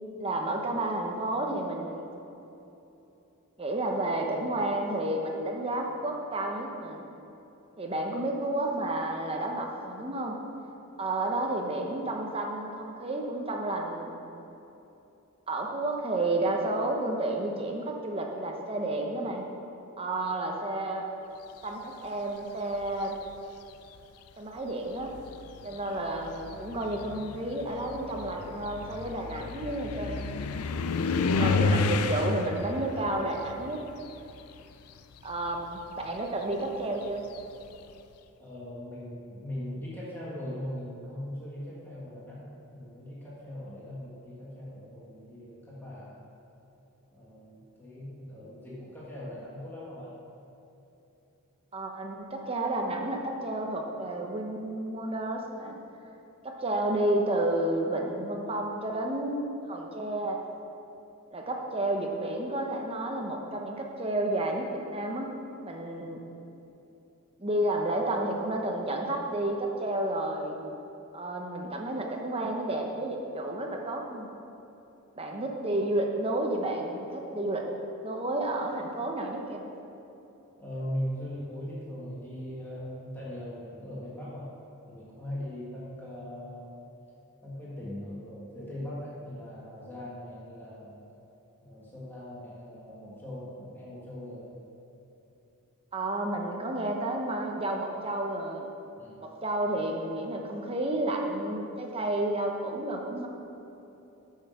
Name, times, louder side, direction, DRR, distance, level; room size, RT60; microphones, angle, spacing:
voice 1, 0.2-2.1 3.6-7.0 7.8-10.4 11.0-14.2 15.5-19.5 20.0-21.1 21.6-23.2 24.4-25.1 25.6-30.4 31.4-33.8 35.2-37.2 51.7-55.8 56.4-59.4 59.7-60.4 61.3-65.3 65.6-66.2 67.4-70.6 71.1-74.3 75.2-77.7 78.0-79.6 95.9-98.7 99.2-103.3, right 1 dB, 25° right, 1 dB, 0.9 m, -31 dB
sound 1, 22.7-23.3 24.3-24.4 24.9-34.8 35.1-37.8, left 4 dB, 90° left, 0.5 m, -31 dB
voice 2, 38.4-46.2 47.1-50.2 80.6-84.5 84.9-86.8 87.4-91.0 91.6-94.5 98.9-99.2, equal, 10° left, -8 dB, 1.9 m, -40 dB
8.5 x 6.6 x 6.8 m, 2.9 s
head